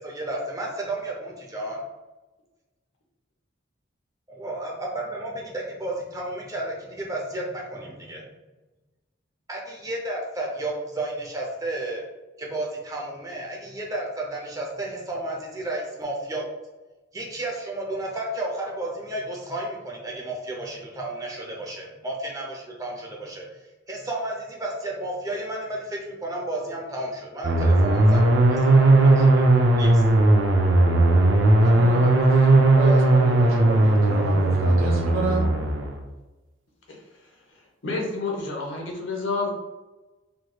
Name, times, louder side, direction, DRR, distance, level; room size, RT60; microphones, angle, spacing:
voice 1, 0.0-1.8 4.3-8.3 9.5-12.0 12.4-16.4 17.1-23.5 23.9-29.4 29.8-30.0, right 1 dB, 15° right, 0.5 m, -32 dB
sound 1, 27.4-36.0, right 2 dB, 65° right, 0.5 m, -17 dB
voice 2, 31.6-35.5, right 3 dB, 85° right, 0.9 m, -30 dB
voice 3, 37.8-39.5, left 3 dB, 65° left, 0.8 m, -29 dB
3.2 x 3.0 x 2.3 m
head